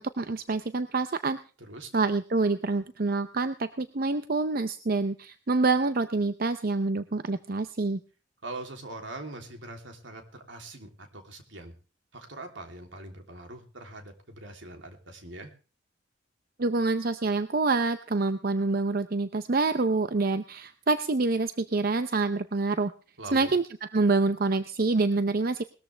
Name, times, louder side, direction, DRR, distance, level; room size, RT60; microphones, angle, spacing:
voice 1, 0.0-1.4 1.9-8.0 16.6-22.9 23.3-23.7 23.9-25.6, right 3 dB, 50° right, 11 dB, 0.7 m, -26 dB
voice 2, 1.6-1.9 8.4-11.7 12.1-15.5 23.2-23.5, right 2 dB, 80° right, 4 dB, 3.2 m, -42 dB
20.0 x 13.5 x 3.4 m, 0.35 s
head